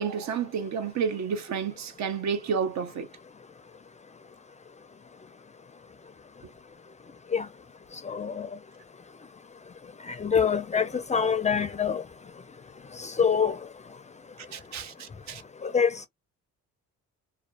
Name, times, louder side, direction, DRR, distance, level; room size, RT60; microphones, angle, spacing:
voice 1, 0.0-3.1 14.5-15.4, right 6 dB, 65° right, 0.7 m, -30 dB
voice 2, 8.1-8.5 10.1-12.0 13.0-13.6 15.6-16.1, left 6 dB, 25° left, 0.4 m, -25 dB
2.4 x 2.3 x 2.2 m
cardioid pair, 90°, 30 cm